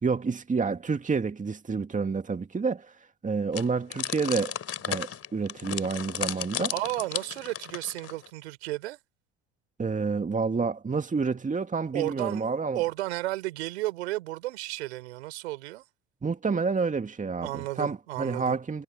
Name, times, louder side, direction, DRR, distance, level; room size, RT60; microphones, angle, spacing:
voice 1, 0.0-2.9 3.2-4.5 4.9-6.7 9.8-12.8 16.2-18.8, right 4 dB, 25° right, 2.2 m, -29 dB
sound 1, 3.5-8.3, left 9 dB, 45° left, 3.6 m, -34 dB
voice 2, 6.7-9.0 11.9-15.8 17.4-18.6, right 18 dB, 85° right, 4.6 m, -33 dB
hypercardioid pair, 65°, 32 cm